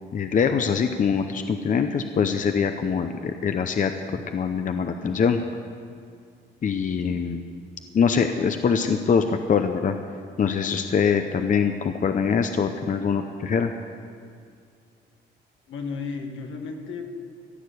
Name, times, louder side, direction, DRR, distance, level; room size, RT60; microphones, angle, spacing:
voice 1, 0.1-5.4 6.6-7.4 7.9-10.0 10.4-13.7, left 6 dB, 40° left, 7 dB, 0.7 m, -23 dB
voice 2, 15.7-17.1, left 4 dB, 75° left, 2 dB, 1.9 m, -33 dB
15.0 x 6.7 x 9.6 m, 2.3 s
cardioid pair, 90°, 20 cm